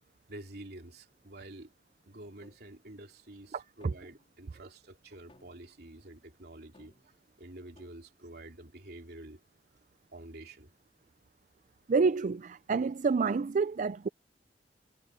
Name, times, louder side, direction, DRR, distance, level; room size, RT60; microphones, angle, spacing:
voice 1, 0.3-1.7 2.1-7.0 7.4-9.4 10.1-10.7, right 1 dB, 65° right, 3.0 m, -48 dB
sound 1, 2.4-2.8 3.8-4.4 5.3-5.8 6.7-7.2 7.8-8.1, left 1 dB, 35° left, 4.0 m, -62 dB
voice 2, 3.5-3.9 11.9-14.1, right 4 dB, 45° right, 0.4 m, -28 dB
head